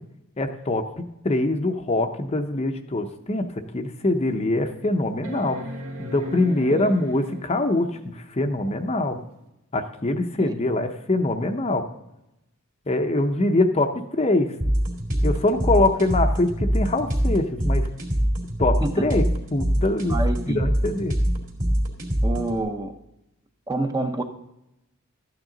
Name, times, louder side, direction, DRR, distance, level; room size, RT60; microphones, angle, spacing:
voice 1, 0.4-5.6 6.0-7.9 8.2-9.2 9.7-11.9 12.9-14.5 15.2-17.9 18.6-19.2 19.5-20.2 20.5-21.1, left 2 dB, 30° left, 6 dB, 0.6 m, -23 dB
sound 1, 3.1-3.2 3.8-3.9 5.2-7.7 9.4-9.5, equal, 80° right, 1.6 m, -37 dB
sound 2, 14.6-22.6, equal, 40° right, 2.5 m, -24 dB
voice 2, 20.1-20.6 22.2-22.9 23.7-24.2, right 2 dB, 15° right, 6 dB, 0.7 m, -27 dB
13.0 x 9.0 x 3.8 m, 0.89 s
head